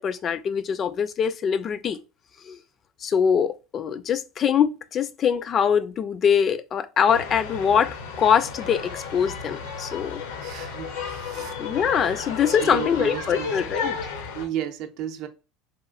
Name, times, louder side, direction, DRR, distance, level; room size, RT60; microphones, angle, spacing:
voice 1, 0.0-2.0 2.4-2.6 3.0-10.2 11.6-14.0, left 7 dB, 40° left, 0.3 m, -23 dB
sound 1, 7.1-14.5, left 5 dB, 80° left, 0.6 m, -33 dB
voice 2, 10.4-11.5 12.5-13.6 14.3-15.3, right 11 dB, 65° right, 0.5 m, -33 dB
3.0 x 2.4 x 2.4 m
hypercardioid pair, 90°, 0 cm